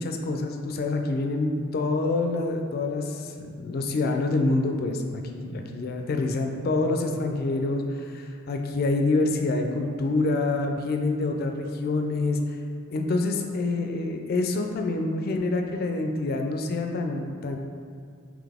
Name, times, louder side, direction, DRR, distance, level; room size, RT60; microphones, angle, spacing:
voice 1, 0.0-12.4 12.9-17.6, left 2 dB, 50° left, 4 dB, 0.4 m, -27 dB
3.9 x 3.0 x 3.5 m, 2.3 s
head